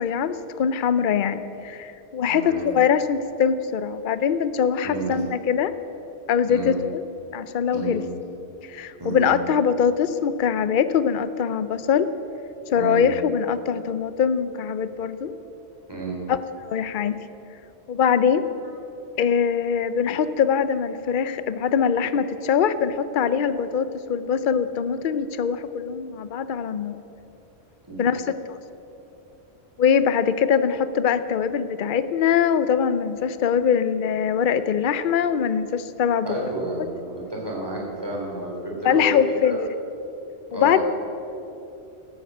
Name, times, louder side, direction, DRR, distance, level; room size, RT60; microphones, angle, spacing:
voice 1, 0.0-5.7 6.3-7.0 7.3-8.0 8.7-12.1 12.7-15.3 16.3-16.4 16.6-17.2 17.9-18.4 19.2-27.0 28.0-28.2 28.5-28.6 29.8-36.3 38.8-39.6 40.5-40.8, left 7 dB, 55° left, 13 dB, 0.7 m, -22 dB
voice 2, 2.3-2.6 4.8-5.1 6.5-6.7 7.7-8.0 9.0-9.3 12.8-13.1 15.9-16.2 27.9-28.0 36.2-39.1 39.4-39.6 40.5-40.8, right 2 dB, 20° right, -3 dB, 3.5 m, -30 dB
13.5 x 11.0 x 7.9 m, 2.9 s
omnidirectional pair, 1.1 m